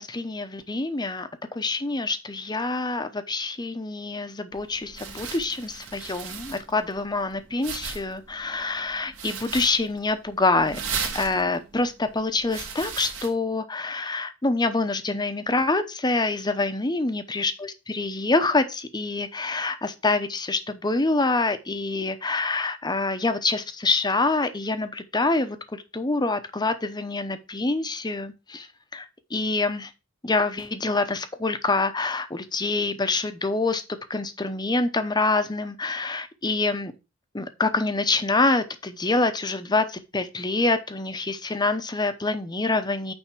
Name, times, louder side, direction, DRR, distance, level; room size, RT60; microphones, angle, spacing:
voice 1, 0.0-28.7 28.9-29.1 29.3-29.9 30.2-36.9 37.3-43.1, left 3 dB, 20° left, 10 dB, 0.8 m, -26 dB
sound 1, 4.5-13.3, right 6 dB, 70° right, 2.7 m, -37 dB
9.0 x 3.5 x 6.1 m, 0.28 s
head